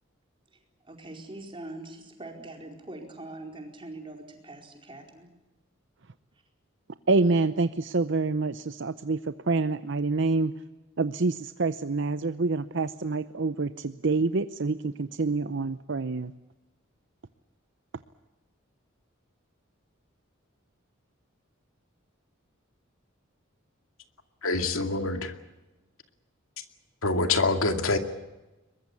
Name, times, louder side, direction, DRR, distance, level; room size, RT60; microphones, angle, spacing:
voice 1, 0.5-5.3, right 2 dB, 25° right, 2 dB, 4.7 m, -43 dB
voice 2, 7.1-9.2 9.5-10.5 11.0-16.3, right 3 dB, 60° right, 11 dB, 0.7 m, -27 dB
voice 3, 24.4-25.3 27.0-28.0, left 3 dB, 90° left, 6 dB, 2.4 m, -25 dB
23.0 x 21.0 x 8.6 m, 1.1 s
head